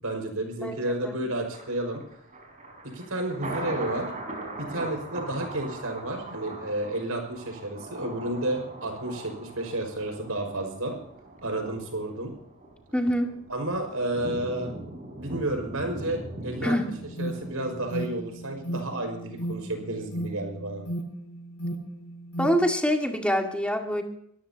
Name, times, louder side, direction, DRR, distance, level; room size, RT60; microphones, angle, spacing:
voice 1, 0.0-2.0 2.9-4.1 4.6-11.0 11.4-12.3 13.5-14.7 15.2-16.9 17.2-20.8, right 1 dB, 80° right, 4 dB, 5.5 m, -31 dB
Thunder, 1.5-18.6 19.0-19.1, right 2 dB, 35° right, 5.5 m, -40 dB
voice 2, 12.9-13.3 16.6-16.9 22.4-24.0, equal, 5° left, 3 dB, 2.0 m, -25 dB
Alarm, 16.9-22.8, right 1 dB, 70° left, 3.8 m, -35 dB
25.0 x 14.0 x 2.9 m, 0.71 s
head